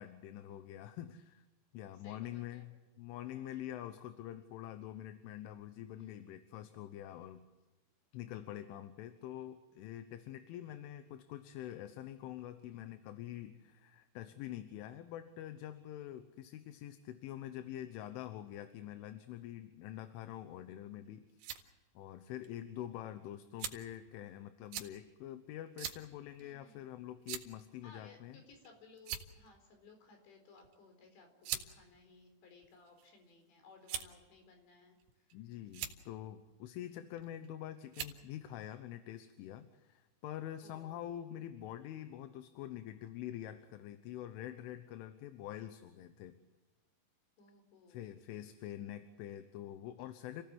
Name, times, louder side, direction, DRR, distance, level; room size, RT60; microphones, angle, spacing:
voice 1, 0.0-1.5 1.7-7.5 8.1-21.4 22.0-28.4 35.3-46.4 47.9-50.4, left 12 dB, 85° left, 9 dB, 3.6 m, -46 dB
voice 2, 1.9-2.6 6.0-6.2 12.7-12.9 26.4-26.8 27.8-35.4 40.6-41.2 47.4-48.0 48.5-48.8, left 4 dB, 65° left, 5 dB, 6.5 m, -60 dB
sound 1, 21.1-21.6 22.4-22.5 23.6-24.0 24.7-24.9 25.8-26.0 26.4-26.5 27.3-27.6 28.5-28.7 29.0-29.5 30.6-30.8 31.4-31.7 32.5-33.1 33.9-34.2 35.0-35.4 35.7-36.0 37.2-37.5 37.9-38.2, right 9 dB, 85° right, 4.3 m, -41 dB
29.0 x 16.5 x 7.9 m, 1.2 s
omnidirectional pair, 5.5 m